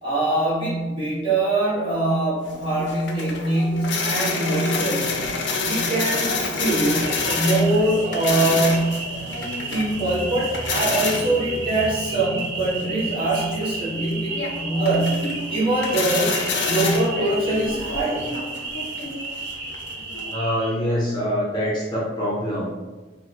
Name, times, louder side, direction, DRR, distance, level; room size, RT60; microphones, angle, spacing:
voice 1, 0.0-5.3 5.6-9.0 9.7-15.2 15.5-16.3 16.6-18.2, right 2 dB, 25° right, -8 dB, 1.2 m, -23 dB
sound 1, 2.4-20.3, left 3 dB, 75° left, 0.5 m, -28 dB
sound 2, 7.0-20.7, right 3 dB, 55° right, 0.8 m, -33 dB
voice 2, 20.3-22.7, equal, 25° left, -6 dB, 0.5 m, -25 dB
3.0 x 2.0 x 3.9 m, 1.2 s
head